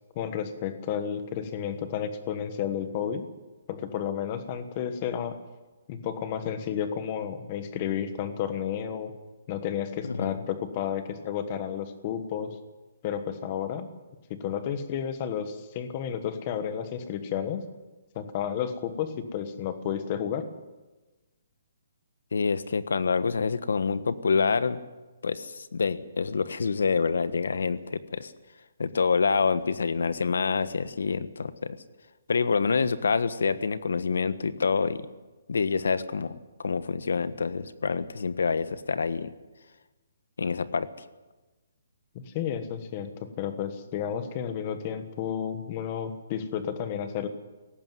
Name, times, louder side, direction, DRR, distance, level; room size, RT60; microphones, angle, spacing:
voice 1, 0.1-3.2 3.7-5.3 5.9-9.1 9.5-12.5 13.0-13.9 14.3-17.6 18.1-20.5 42.1-43.1 43.4-47.3, left 8 dB, 20° left, 9 dB, 1.3 m, -32 dB
voice 2, 10.0-10.3 22.3-24.8 25.2-28.3 28.8-31.8 32.3-35.1 35.5-39.3 40.4-41.1, left 5 dB, 80° left, 13 dB, 1.3 m, -27 dB
18.0 x 15.5 x 9.3 m, 1.2 s
hypercardioid pair, 180°, 0 cm